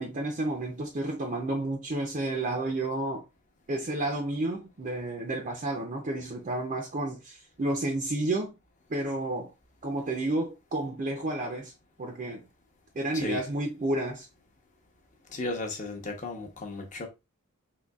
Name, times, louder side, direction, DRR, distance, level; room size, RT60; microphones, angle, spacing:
voice 1, 0.0-3.2 3.7-8.5 8.9-9.5 9.8-11.7 12.0-12.5 12.9-14.3, right 2 dB, 35° right, 0.5 m, -31 dB
voice 2, 15.3-17.1, left 2 dB, 35° left, 0.8 m, -34 dB
3.9 x 2.8 x 2.3 m
head